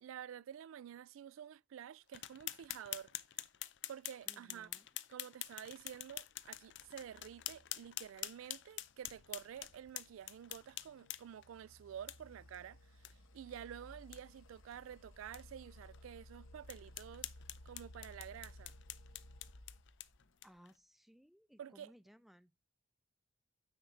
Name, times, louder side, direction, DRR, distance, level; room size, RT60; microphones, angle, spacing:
voice 1, 0.0-3.1 3.9-4.7 5.1-17.3 17.7-18.7 21.6-21.9, right 9 dB, 85° right, 0.3 m, -50 dB
sound 1, 2.1-11.5 12.1-12.2 12.5-12.6 13.0-13.1 13.5-13.6 14.0-14.2 14.7-14.8 15.3-15.4 15.9-16.0 16.7-20.7, left 15 dB, 60° left, 0.5 m, -47 dB
voice 2, 4.3-4.9 20.4-22.5, equal, ahead, 0.5 m, -62 dB
sound 2, 6.1-20.6, left 1 dB, 85° left, 1.1 m, -59 dB
9.3 x 4.2 x 4.5 m
head